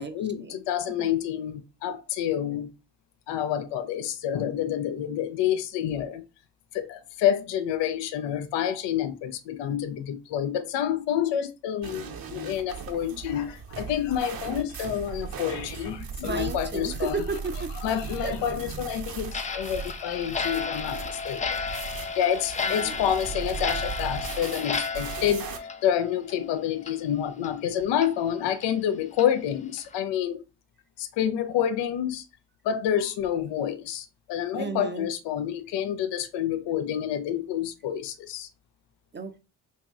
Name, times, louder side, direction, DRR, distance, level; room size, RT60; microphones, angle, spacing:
voice 1, 0.0-2.7 3.3-6.2 6.7-17.2 17.8-21.6 22.2-30.4 31.0-32.3 32.6-38.5, left 10 dB, 60° left, 0.6 m, -28 dB
sound 1, 11.8-25.6, right 6 dB, 45° right, 0.9 m, -38 dB
voice 2, 16.2-17.7 18.2-18.3 22.6-23.0 34.5-35.1 39.1-39.4, right 4 dB, 20° right, 0.7 m, -33 dB
Clock, 19.3-26.5 26.8-26.9 27.4-27.5 28.0-28.1 28.6-28.7 29.2-29.3 29.8-29.9, left 5 dB, 15° left, 0.4 m, -33 dB
2.9 x 2.7 x 3.5 m
hypercardioid pair, 50°, 49 cm